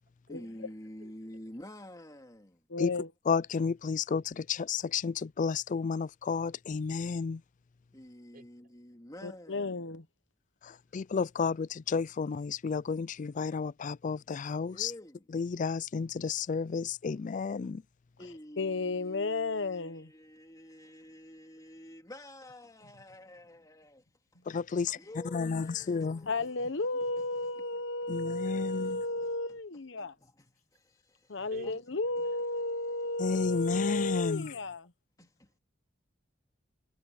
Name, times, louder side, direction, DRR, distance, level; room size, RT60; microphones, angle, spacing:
voice 1, 0.3-2.6 7.9-9.8 14.7-15.3 18.2-24.0 24.3-24.4 24.9-29.6 30.0-31.8 33.2-33.4 33.8-33.9 34.2-34.5 35.2-35.5, left 1 dB, 20° left, 2.8 m, -50 dB
voice 2, 1.0-1.4 8.3-8.7 31.5-31.8 32.1-32.4, right 1 dB, 50° right, 4.9 m, -54 dB
voice 3, 2.7-3.1 9.2-10.0 18.6-20.1 26.3-30.1 31.3-34.9, left 2 dB, 70° left, 1.0 m, -33 dB
voice 4, 3.3-7.4 10.6-14.9 15.3-17.8 24.5-25.0 25.2-26.3 28.1-29.0 33.2-34.5, left 5 dB, 45° left, 0.4 m, -32 dB
head